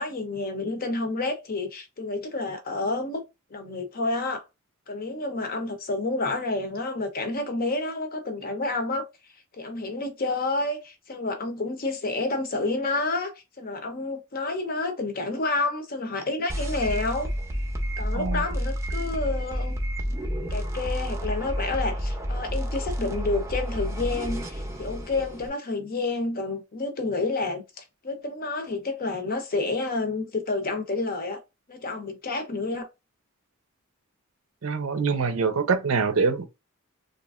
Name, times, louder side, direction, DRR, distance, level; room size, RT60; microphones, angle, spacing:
voice 1, 0.0-3.2 3.5-4.4 4.9-9.1 9.6-17.3 18.0-19.8 20.5-31.4 31.7-32.9, left 3 dB, 45° left, 0.7 m, -29 dB
sound 1, 16.5-25.5, equal, 15° right, 0.6 m, -30 dB
voice 2, 18.1-18.5 34.6-36.5, right 5 dB, 70° right, 0.6 m, -24 dB
3.0 x 2.5 x 2.4 m
head